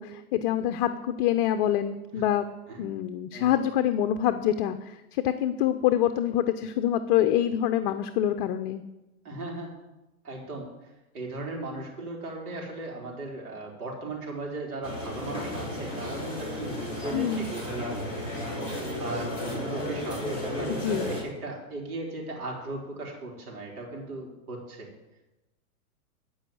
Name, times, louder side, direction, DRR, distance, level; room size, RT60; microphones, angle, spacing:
voice 1, 0.0-2.5 2.8-8.8 17.1-17.5 20.8-21.1, left 11 dB, 40° left, 9 dB, 0.6 m, -26 dB
voice 2, 9.2-9.7 10.2-18.3 18.7-24.9, right 2 dB, 80° right, -1 dB, 4.2 m, -37 dB
sound 1, 14.8-21.2, left 1 dB, 10° right, 4.8 m, -33 dB
14.5 x 5.6 x 7.8 m, 1.0 s
hypercardioid pair, 130°, 44 cm